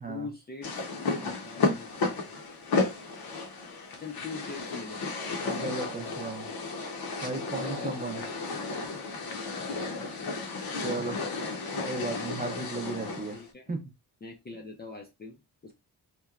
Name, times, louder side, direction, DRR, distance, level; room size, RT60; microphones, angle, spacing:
voice 1, 0.1-2.4 4.0-5.0 7.5-8.3 9.5-10.3 13.3-13.7 14.2-15.7, left 4 dB, 25° left, 0.4 m, -43 dB
sound 1, 0.6-13.4, left 3 dB, 60° left, 0.7 m, -33 dB
voice 2, 5.4-6.5 7.2-8.2 10.8-11.2 11.8-13.4 13.7-13.8, right 3 dB, 20° right, 0.5 m, -35 dB
3.0 x 2.1 x 2.3 m
wide cardioid pair, 125°, 40 cm